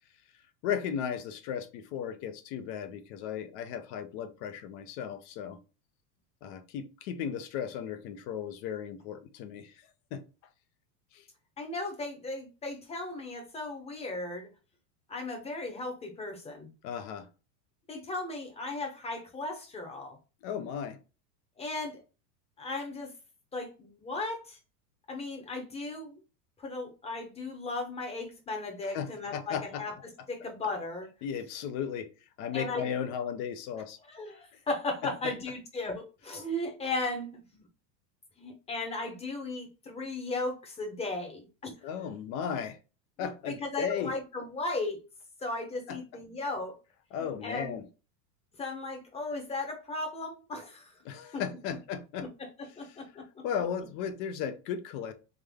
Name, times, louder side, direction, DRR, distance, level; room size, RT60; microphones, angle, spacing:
voice 1, 0.6-5.6 6.4-10.2 11.1-11.2 16.8-17.3 20.4-21.0 28.9-29.8 31.2-32.1 32.4-34.0 34.5-34.6 41.8-42.8 43.2-44.1 45.9-46.0 47.1-47.9 51.0-52.3 53.4-55.1, left 8 dB, 35° left, 0.4 m, -35 dB
voice 2, 11.6-14.5 15.1-16.7 17.9-20.2 21.6-22.0 22.6-23.1 23.5-24.6 25.1-26.2 26.6-29.9 30.3-31.1 32.5-32.9 34.1-37.6 38.4-42.1 43.2-45.0 45.4-46.7 47.4-47.8 48.6-50.9 51.3-51.4 52.2-52.5 52.8-53.4, left 2 dB, 15° left, 0.8 m, -36 dB
3.6 x 3.2 x 3.4 m
supercardioid pair, 150°, 48 cm